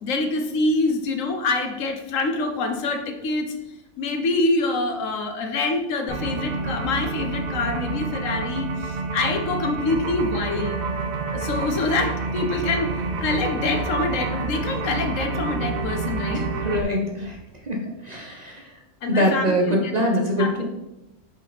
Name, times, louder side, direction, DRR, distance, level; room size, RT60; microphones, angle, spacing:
voice 1, 0.0-3.5 4.0-10.8 11.3-12.9 13.2-16.4 19.0-19.9 20.4-20.6, left 3 dB, 75° left, 5 dB, 1.2 m, -25 dB
sound 1, 6.1-16.8, right 4 dB, 55° right, 0.5 m, -28 dB
voice 2, 16.3-17.4 17.7-17.8 18.0-18.6 19.1-20.6, equal, 35° right, 0 dB, 0.8 m, -23 dB
5.4 x 5.1 x 4.0 m, 0.96 s
omnidirectional pair, 1.4 m